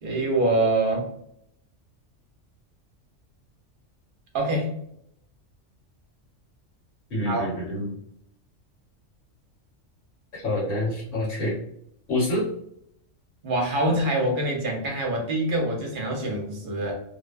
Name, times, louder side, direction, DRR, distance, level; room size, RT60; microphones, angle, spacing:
voice 1, 0.0-1.1 4.3-4.7 7.3-7.5 13.4-16.9, right 1 dB, 50° right, 0 dB, 0.8 m, -25 dB
voice 2, 7.1-7.9 10.3-11.6 12.1-12.5, left 1 dB, 75° left, -5 dB, 1.3 m, -27 dB
2.5 x 2.1 x 2.3 m, 0.72 s
omnidirectional pair, 1.3 m